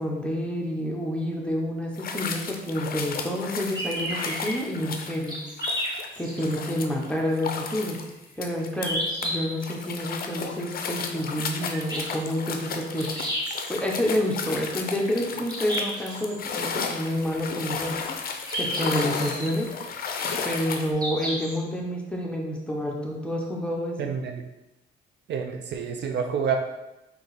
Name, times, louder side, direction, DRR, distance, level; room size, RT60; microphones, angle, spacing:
voice 1, 0.0-5.3 6.2-8.0 8.4-13.1 13.7-18.0 18.6-19.7 20.4-24.1, equal, 5° left, -1 dB, 0.8 m, -28 dB
sound 1, 2.0-9.3 9.6-20.9, left 5 dB, 50° left, 0.5 m, -34 dB
sound 2, 3.7-4.5 5.3-6.6 7.0-7.1 8.8-9.3 11.7-12.3 13.0-13.7 15.5-16.3 18.5-19.5 21.0-21.6, equal, 20° right, 1.4 m, -31 dB
voice 2, 24.0-24.4 25.3-26.6, right 7 dB, 60° right, 4 dB, 0.5 m, -28 dB
3.6 x 2.8 x 4.0 m, 0.96 s
cardioid pair, 90°, 20 cm